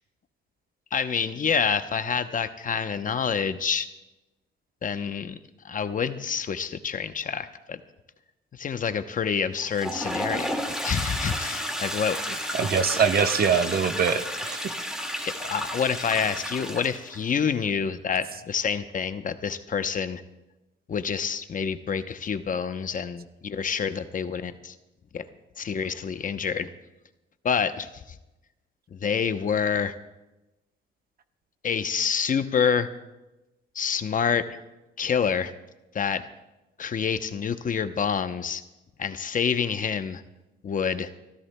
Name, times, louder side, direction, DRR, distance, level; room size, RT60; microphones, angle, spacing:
voice 1, 0.9-3.9 4.8-5.4 5.6-7.8 8.5-12.2 15.2-20.2 20.9-24.8 25.1-25.2 25.6-26.7 27.4-28.2 28.9-29.9 31.6-32.9 33.7-34.6 35.0-35.5 35.9-36.3 36.8-38.6 39.0-40.2 40.6-41.1, left 6 dB, 45° left, 10 dB, 0.8 m, -27 dB
Toilet flush, 9.6-17.2, equal, 5° right, 2.0 m, -32 dB
voice 2, 12.5-14.7, right 6 dB, 50° right, 8 dB, 0.9 m, -23 dB
30.0 x 14.5 x 2.2 m, 1.0 s
cardioid pair, 90°, 20 cm